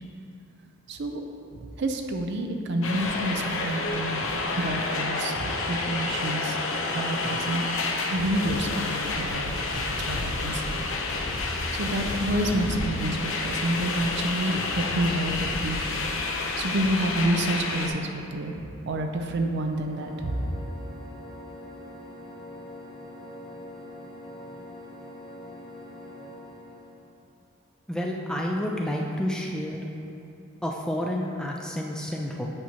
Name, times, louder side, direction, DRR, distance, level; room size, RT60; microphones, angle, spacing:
voice 1, 0.9-1.2 1.5-6.6 6.9-10.8 11.8-16.0 16.6-18.5 18.9-20.6, right 1 dB, 50° right, 4 dB, 0.5 m, -29 dB
sound 1, 2.8-17.9, left 3 dB, 60° left, 0.6 m, -29 dB
sound 2, 19.3-27.1, left 1 dB, 25° left, 1.1 m, -44 dB
voice 2, 27.9-29.8 30.6-32.5, equal, 5° left, -1 dB, 0.3 m, -29 dB
8.6 x 5.9 x 2.8 m, 2.7 s
head